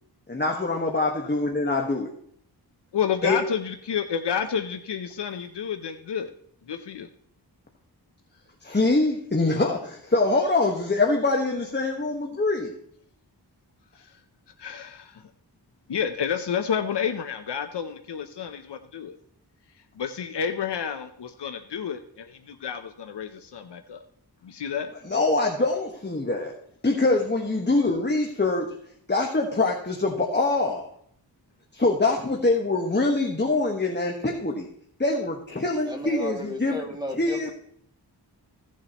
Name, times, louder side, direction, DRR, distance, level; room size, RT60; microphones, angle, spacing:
voice 1, 0.3-2.1 3.2-3.4 8.6-12.7 25.0-26.5 26.8-28.8 29.1-30.9 31.7-34.7 35.0-36.8 37.2-37.5, left 2 dB, 25° left, 1 dB, 1.5 m, -24 dB
voice 2, 2.9-6.3 6.7-7.1 14.6-15.2 15.9-19.1 20.0-24.0 24.4-24.9, left 7 dB, 85° left, 7 dB, 0.8 m, -30 dB
voice 3, 35.8-37.5, left 1 dB, 10° right, 0 dB, 2.3 m, -34 dB
16.5 x 7.4 x 3.0 m, 0.65 s
cardioid pair, 60°, 40 cm